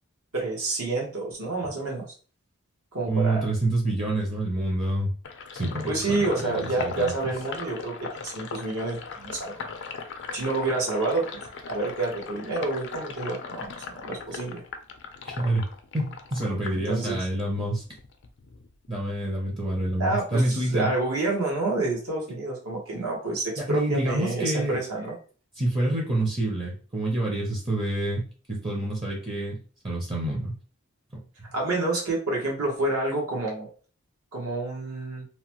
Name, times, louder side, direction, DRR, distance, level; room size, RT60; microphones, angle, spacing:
voice 1, 0.3-2.1 2.9-3.5 5.9-9.6 10.3-11.3 11.7-14.6 16.9-17.2 20.0-25.1 31.5-33.7 34.3-35.2, right 2 dB, 75° right, -2 dB, 1.1 m, -28 dB
voice 2, 3.1-5.1 5.5-7.1 15.2-15.7 15.9-17.8 18.9-20.9 23.6-24.8 25.6-30.5 31.1-31.2, right 1 dB, 25° right, -2 dB, 0.6 m, -27 dB
Sink (filling or washing), 5.2-17.5 17.9-19.3, left 5 dB, 55° left, 0.4 m, -39 dB
3.0 x 2.1 x 2.9 m, 0.39 s
head